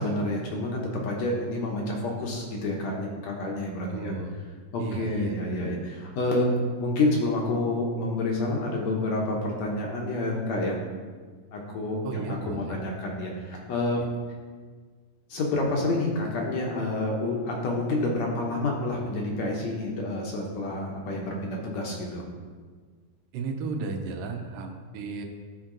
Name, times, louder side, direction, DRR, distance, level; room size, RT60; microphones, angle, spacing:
voice 1, 0.0-4.1 4.7-6.5 6.8-10.8 11.5-14.0 15.3-22.3, left 2 dB, 65° left, -1 dB, 2.0 m, -28 dB
voice 2, 3.9-4.4 4.8-5.4 12.0-12.8 14.0-14.1 23.3-25.3, right 4 dB, 85° right, 4 dB, 2.5 m, -34 dB
12.0 x 4.5 x 3.8 m, 1.5 s
omnidirectional pair, 3.8 m